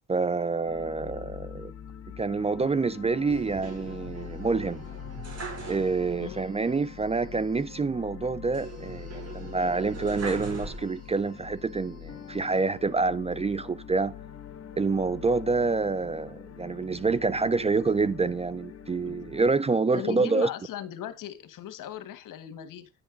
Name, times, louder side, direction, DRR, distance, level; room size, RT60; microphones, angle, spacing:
voice 1, 0.1-1.7 2.2-4.8 5.7-14.1 14.8-20.5, right 4 dB, 20° right, 0.5 m, -27 dB
sound 1, 0.6-19.5, left 9 dB, 45° left, 1.9 m, -43 dB
sound 2, 3.3-6.3 6.6-6.7 8.5-11.3 11.8-12.6, right 4 dB, 45° right, 4.9 m, -41 dB
voice 2, 19.9-22.9, left 10 dB, 65° left, 1.7 m, -38 dB
10.5 x 7.9 x 3.9 m
cardioid pair, 105°, 34 cm